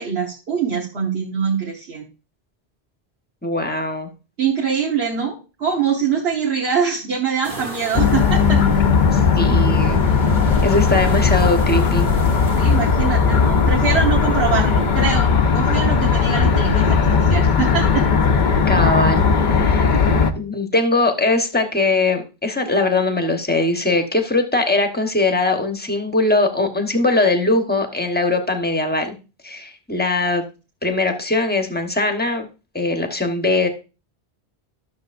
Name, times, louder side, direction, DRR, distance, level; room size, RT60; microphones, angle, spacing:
voice 1, 0.0-2.0 4.4-8.6 12.5-18.1, right 6 dB, 70° right, -2 dB, 1.4 m, -23 dB
voice 2, 3.4-4.1 9.1-10.0 10.6-12.1 18.7-19.9 20.4-29.1 29.4-30.4 30.8-32.5 32.7-33.7, left 2 dB, 10° left, 5 dB, 1.0 m, -20 dB
sound 1, 7.4-15.1, right 3 dB, 55° right, 1.6 m, -37 dB
sound 2, 7.9-20.3, left 5 dB, 50° left, 0.8 m, -17 dB
12.5 x 6.7 x 2.5 m, 0.31 s
omnidirectional pair, 1.1 m